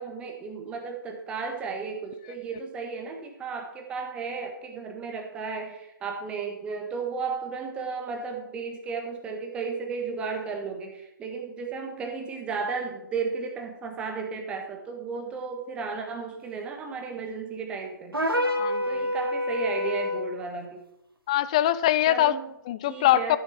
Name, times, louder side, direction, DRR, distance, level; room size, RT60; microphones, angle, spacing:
voice 1, 0.0-18.2 18.8-20.8 22.1-22.5 22.9-23.4, right 5 dB, 10° right, 3 dB, 1.5 m, -34 dB
sound 1, 18.1-20.3, left 1 dB, 85° right, 2.0 m, -27 dB
voice 2, 18.4-19.1 21.3-22.4 22.7-23.4, left 13 dB, 15° left, 16 dB, 0.4 m, -23 dB
14.5 x 10.0 x 4.2 m, 0.81 s
figure-of-eight pair, 140°, 12 cm